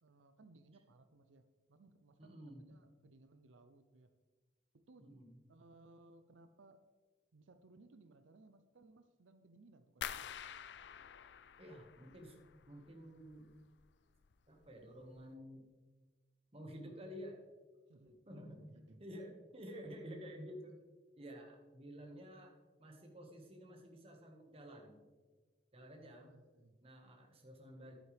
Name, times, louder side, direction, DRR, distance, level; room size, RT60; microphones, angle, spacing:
voice 1, 0.0-4.1 4.7-5.1 5.5-6.9 7.3-10.3 17.9-19.0 26.0-26.8, right 2 dB, 85° right, 9 dB, 0.6 m, -63 dB
voice 2, 2.2-2.6 5.0-5.4 11.6-13.5 14.5-15.6 16.5-17.4 18.0-18.7 19.0-20.8 21.2-22.5 22.8-25.0 25.7-26.3 26.8-28.0, equal, 30° right, 1 dB, 1.6 m, -51 dB
sound 1, 10.0-12.9 13.2-13.9 14.2-14.6 15.1-15.2, left 9 dB, 65° left, 0.4 m, -48 dB
11.0 x 9.1 x 3.4 m, 1.3 s
head